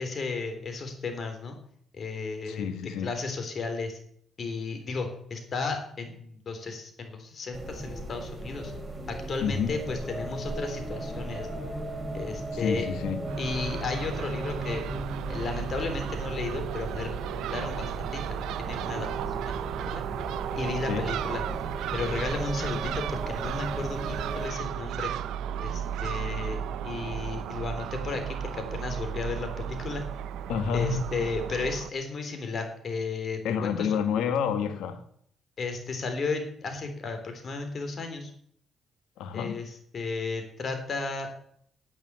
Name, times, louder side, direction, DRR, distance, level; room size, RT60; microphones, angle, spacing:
voice 1, 0.0-1.6 2.0-2.7 3.0-4.0 4.4-8.7 9.1-11.7 12.1-12.9 13.4-14.8 15.3-19.1 19.9-20.0 20.6-21.4 21.9-25.1 25.6-26.6 26.8-30.0 30.7-33.9 35.6-38.3 39.3-41.4, left 4 dB, 50° left, 3.6 m, -34 dB
voice 2, 2.4-3.1 9.4-9.8 12.5-13.3 20.9-21.1 30.5-31.1 33.4-35.0 39.2-39.6, left 7 dB, 90° left, 1.6 m, -29 dB
sound 1, 7.5-24.5, right 1 dB, 20° right, 4.7 m, -37 dB
Crow / Gull seagull, 13.3-31.9, right 9 dB, 85° right, 0.6 m, -34 dB
10.0 x 8.7 x 9.5 m
cardioid pair, 90°, 0 cm